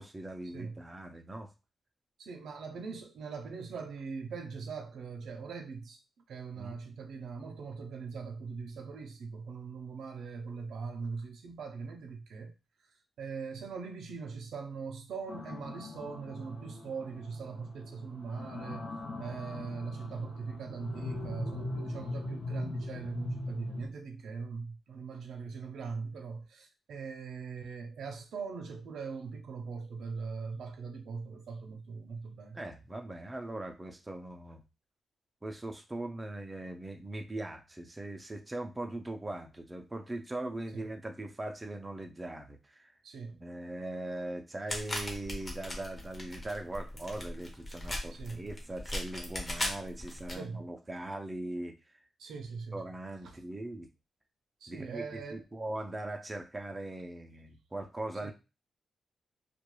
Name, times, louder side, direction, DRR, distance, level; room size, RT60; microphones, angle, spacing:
voice 1, 0.0-1.5 6.6-6.8 32.5-34.6 35.4-42.9 43.3-51.7 52.7-53.9 54.7-58.3, right 1 dB, 15° right, 0.3 m, -40 dB
voice 2, 2.2-6.0 6.3-12.5 13.2-18.9 19.2-32.6 40.7-40.8 43.0-43.4 48.1-48.4 50.3-50.6 52.2-52.8 54.6-55.4 58.2-58.3, right 5 dB, 80° right, 0.5 m, -41 dB
sound 1, 15.3-23.9, left 2 dB, 60° left, 0.6 m, -40 dB
sound 2, 44.7-50.4, left 1 dB, 25° left, 0.7 m, -38 dB
2.2 x 2.2 x 3.0 m
wide cardioid pair, 150°, 0 cm